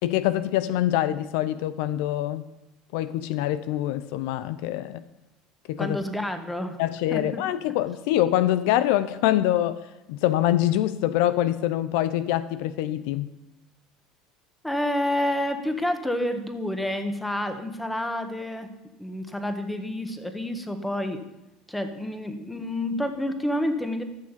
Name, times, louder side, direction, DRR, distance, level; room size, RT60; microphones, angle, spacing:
voice 1, 0.0-2.5 2.9-5.0 5.7-6.0 6.8-9.8 10.1-13.3, left 13 dB, 75° left, 0.5 m, -25 dB
voice 2, 5.8-6.8 7.1-7.4 14.6-18.7 19.0-21.2 21.7-24.0, left 1 dB, 5° left, 1.5 m, -29 dB
13.0 x 6.4 x 7.5 m
supercardioid pair, 95°, 0 cm